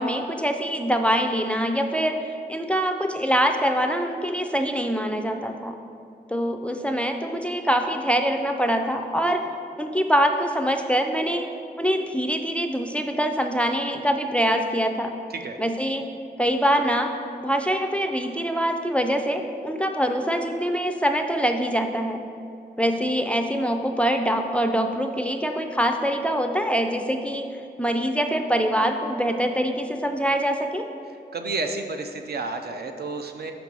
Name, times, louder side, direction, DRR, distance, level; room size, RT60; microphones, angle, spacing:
voice 1, 0.0-2.2 2.5-5.8 6.3-9.4 9.8-11.5 11.8-15.1 15.6-16.1 16.4-17.1 17.4-22.2 22.8-27.5 27.8-30.8, equal, 5° left, 5 dB, 0.4 m, -24 dB
voice 2, 31.3-33.5, right 3 dB, 65° right, 5 dB, 0.6 m, -31 dB
5.3 x 5.2 x 6.0 m, 2.5 s
wide cardioid pair, 115°, 18 cm